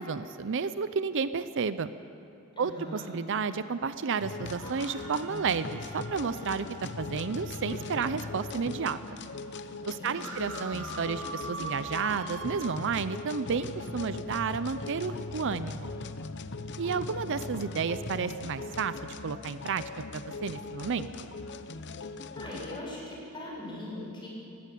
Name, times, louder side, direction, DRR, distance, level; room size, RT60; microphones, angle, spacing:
voice 1, 0.0-1.9 2.6-6.7 7.0-9.0 9.8-15.9 16.8-18.9 19.2-19.8 20.1-21.1, right 5 dB, 55° right, 13 dB, 0.5 m, -31 dB
voice 2, 2.5-3.1 10.0-10.4 22.4-24.3, left 1 dB, 20° left, -4 dB, 7.0 m, -41 dB
sound 1, 4.2-22.8, left 3 dB, 50° left, 0.8 m, -40 dB
sound 2, 4.4-8.8 9.3-9.4 9.6-12.7, right 2 dB, 75° right, 2.1 m, -43 dB
19.5 x 16.0 x 8.5 m, 2.6 s
head